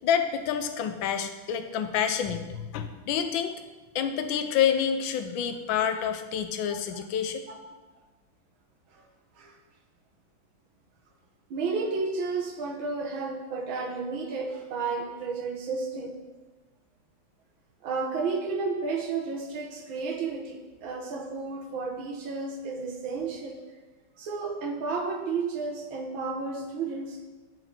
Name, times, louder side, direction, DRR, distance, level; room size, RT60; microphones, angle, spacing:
voice 1, 0.0-3.5 3.9-7.4, left 8 dB, 80° left, 8 dB, 1.4 m, -28 dB
voice 2, 11.5-16.2 17.8-23.6 24.2-27.2, right 4 dB, 90° right, 2 dB, 2.0 m, -32 dB
10.0 x 4.8 x 5.9 m, 1.2 s
omnidirectional pair, 2.1 m